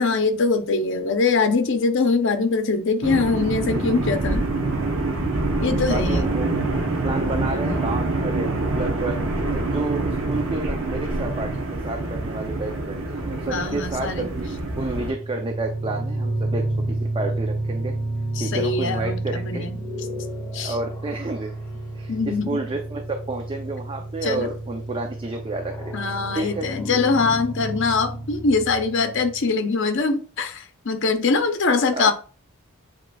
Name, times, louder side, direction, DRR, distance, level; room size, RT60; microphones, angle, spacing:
voice 1, 0.0-4.5 5.6-6.3 13.5-14.3 18.4-19.8 20.5-20.7 22.1-22.6 24.2-24.5 25.9-32.1, left 4 dB, 60° left, 0.6 m, -23 dB
sound 1, 3.0-15.1, right 2 dB, 70° right, 0.8 m, -25 dB
voice 2, 5.9-6.5 7.0-9.2 9.5-16.6 17.0-17.9 18.4-19.7 20.6-21.5 21.9-22.1 22.5-23.0 23.3-25.9 26.3-26.7 31.9-32.1, right 2 dB, 25° right, 0.4 m, -30 dB
sound 2, 14.9-29.4, right 1 dB, 20° left, 1.1 m, -30 dB
7.5 x 3.0 x 2.3 m
head